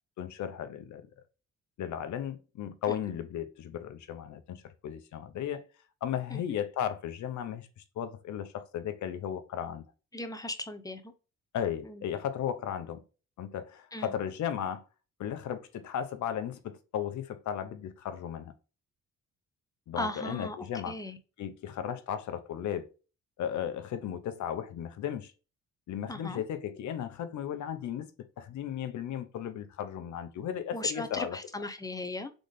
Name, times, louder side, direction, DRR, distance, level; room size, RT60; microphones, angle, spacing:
voice 1, 0.2-1.1 1.8-5.7 6.0-7.7 8.0-9.8 11.5-13.0 13.4-14.8 15.2-18.5 19.9-21.0 21.4-22.9 23.4-25.3 25.9-31.4, left 9 dB, 70° left, 0.9 m, -35 dB
voice 2, 10.1-11.1 11.8-12.0 13.9-14.1 20.0-20.6 20.8-21.2 26.1-26.4 30.7-32.3, left 2 dB, 10° left, 0.8 m, -37 dB
3.9 x 3.8 x 3.5 m
cardioid pair, 90°, 30 cm